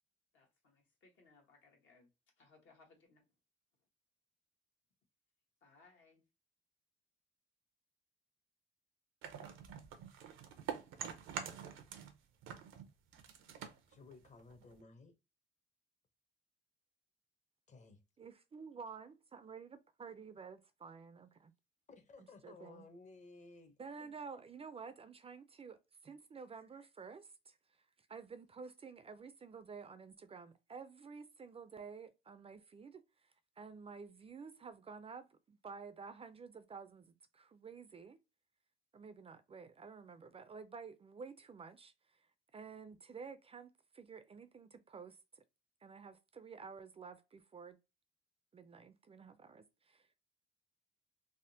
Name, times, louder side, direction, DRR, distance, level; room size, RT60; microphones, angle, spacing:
voice 1, 0.3-2.1 2.4-3.2 5.6-6.2, left 3 dB, 75° left, 1.2 m, -66 dB
sound 1, 9.2-12.2 12.4-14.8, right 8 dB, 85° right, 0.6 m, -46 dB
voice 2, 13.9-15.1 17.7-18.0 21.9-23.7 24.0-24.1, left 3 dB, 40° left, 0.7 m, -57 dB
voice 3, 18.2-21.5 22.4-22.9 23.8-27.6 28.1-33.0 33.6-38.2 38.9-42.3 42.5-45.4 45.8-47.8 48.5-50.1, right 5 dB, 30° right, 0.4 m, -51 dB
3.5 x 2.0 x 2.6 m
cardioid pair, 90°, 20 cm